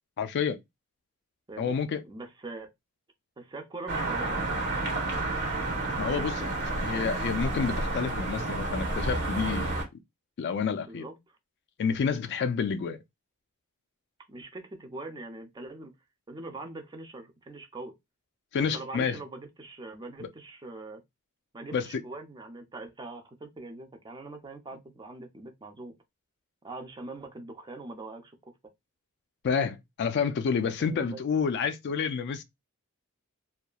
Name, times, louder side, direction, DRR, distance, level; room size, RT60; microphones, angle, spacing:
voice 1, 0.2-0.6 1.6-2.0 6.0-9.7 10.4-11.1 11.8-13.0 18.5-19.2 20.2-20.3 21.7-21.9 29.4-32.4, left 6 dB, 50° left, 0.3 m, -29 dB
voice 2, 2.0-2.7 3.4-4.6 10.9-11.4 14.3-15.9 16.3-17.9 18.6-21.0 21.5-25.9 26.6-28.4 30.8-31.2, right 2 dB, 20° right, 0.5 m, -42 dB
sound 1, 3.9-9.8, right 2 dB, 50° right, 1.0 m, -30 dB
2.8 x 2.3 x 2.2 m
head